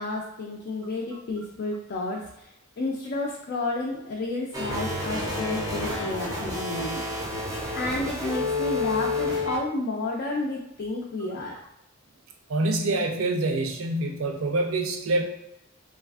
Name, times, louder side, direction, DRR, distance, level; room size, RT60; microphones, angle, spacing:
voice 1, 0.0-2.5 2.8-7.3 7.7-11.6, left 2 dB, 50° left, -2 dB, 0.3 m, -31 dB
sound 1, 4.5-9.6, left 2 dB, 15° right, 0.4 m, -29 dB
voice 2, 12.5-15.2, right 2 dB, 70° right, 3 dB, 0.4 m, -26 dB
3.2 x 2.4 x 2.3 m, 0.84 s
head